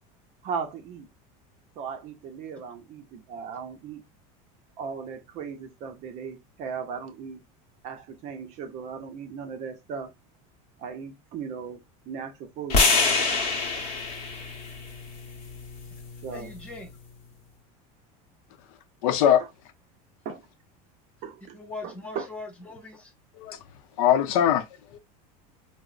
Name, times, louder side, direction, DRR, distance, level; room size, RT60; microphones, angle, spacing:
voice 1, 0.4-1.1 1.8-4.0 4.8-7.4 7.8-10.1 10.8-12.9 16.2-16.5 19.4-19.5 20.2-20.4 21.2-21.6 21.8-22.3, right 6 dB, 40° right, 0.6 m, -37 dB
sound 1, 12.7-16.9, left 4 dB, 35° left, 0.8 m, -27 dB
voice 2, 16.3-16.9 21.5-23.1, left 3 dB, 5° left, 0.6 m, -40 dB
voice 3, 19.0-19.4 23.4-23.6 24.0-24.7 24.9-25.0, left 10 dB, 70° left, 0.6 m, -21 dB
4.8 x 2.0 x 2.4 m
cardioid pair, 165°, 18 cm